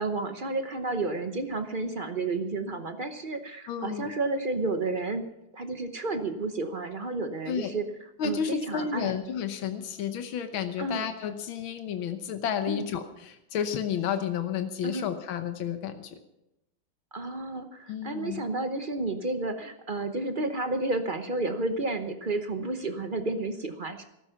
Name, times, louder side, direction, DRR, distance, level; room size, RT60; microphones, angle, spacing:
voice 1, 0.0-5.2 5.5-7.8 8.2-9.1 10.8-11.0 12.7-12.9 14.8-15.1 17.1-24.0, right 2 dB, 40° right, 7 dB, 0.7 m, -31 dB
voice 2, 3.7-4.1 7.5-7.7 8.2-16.2 17.9-18.4, left 8 dB, 90° left, 8 dB, 1.8 m, -31 dB
14.5 x 13.0 x 5.7 m, 0.88 s
omnidirectional pair, 2.1 m